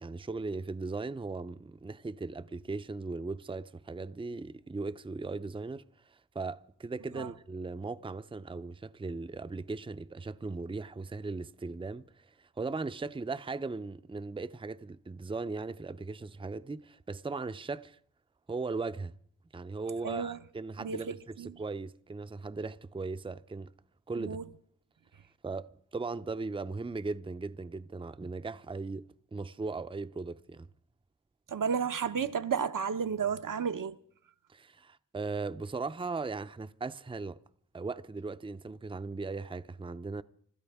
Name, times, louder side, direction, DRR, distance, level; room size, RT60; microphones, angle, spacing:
voice 1, 0.0-18.0 18.5-19.1 19.5-23.7 24.1-24.4 25.4-30.7 34.5-37.4 37.7-40.2, right 3 dB, 15° right, 0.5 m, -38 dB
voice 2, 20.0-20.4 20.8-21.5 24.2-24.4 31.5-33.9, right 6 dB, 75° right, 0.8 m, -32 dB
25.5 x 13.0 x 3.5 m
wide cardioid pair, 75°, 33 cm